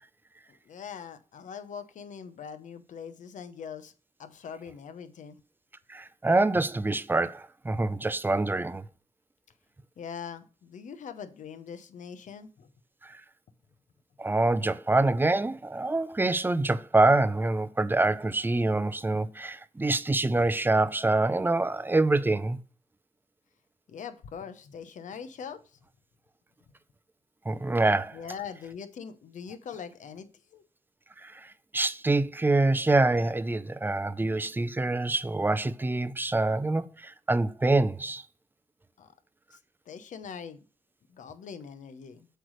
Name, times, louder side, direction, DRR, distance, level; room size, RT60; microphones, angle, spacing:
voice 1, 0.7-3.9 4.2-5.4 10.0-12.7 23.9-25.8 28.1-30.6 39.0-39.1 39.5-39.6 39.9-40.6 41.1-42.3, left 7 dB, 70° left, 0.9 m, -42 dB
voice 2, 5.9-8.9 13.0-13.2 14.2-22.6 27.5-28.2 31.2-31.5 31.7-38.2, right 2 dB, 15° right, 0.5 m, -25 dB
7.8 x 3.2 x 6.4 m
cardioid pair, 70°, 14 cm